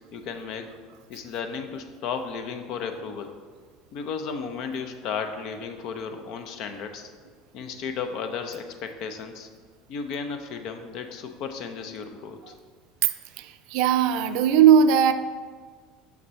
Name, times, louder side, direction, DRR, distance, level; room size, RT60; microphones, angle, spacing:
voice 1, 0.1-0.7 1.1-3.3 3.9-7.1 7.5-9.5 9.9-12.5, left 6 dB, 60° left, 7 dB, 0.6 m, -34 dB
voice 2, 13.4-15.1, right 8 dB, 70° right, 10 dB, 0.4 m, -18 dB
6.4 x 5.8 x 3.1 m, 1.5 s
hypercardioid pair, 85°, 0 cm